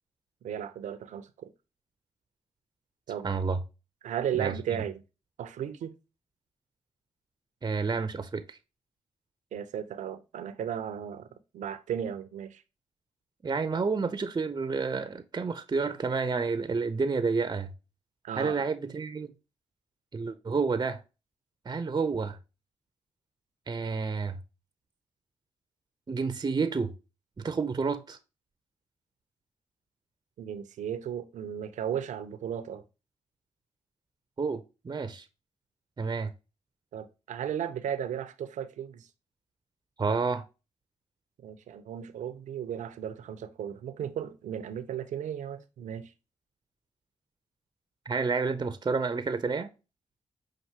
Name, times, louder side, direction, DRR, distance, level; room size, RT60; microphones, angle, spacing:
voice 1, 0.4-1.5 3.1-3.3 4.0-5.0 5.4-5.9 9.5-11.3 11.5-12.6 18.2-18.6 30.4-32.8 36.9-39.1 41.4-46.1, right 9 dB, 80° right, 0.6 m, -35 dB
voice 2, 3.2-3.6 4.3-4.8 7.6-8.6 13.4-17.7 18.4-19.3 20.1-21.0 21.7-22.4 23.7-24.4 26.1-26.9 27.4-28.2 34.4-35.3 36.0-36.3 40.0-40.5 48.1-49.7, right 4 dB, 35° right, 0.6 m, -30 dB
5.7 x 2.5 x 2.8 m
supercardioid pair, 45°, 13 cm